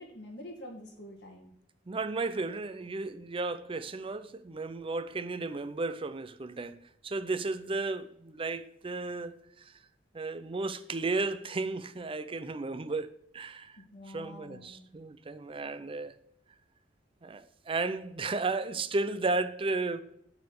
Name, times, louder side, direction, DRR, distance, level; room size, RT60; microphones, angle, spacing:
voice 1, 0.0-1.5 13.8-14.9, left 1 dB, 65° left, 1.9 m, -47 dB
voice 2, 1.9-9.7 10.1-13.8 14.1-16.1 17.2-20.0, right 3 dB, 30° right, 0.5 m, -34 dB
9.5 x 4.2 x 6.9 m
head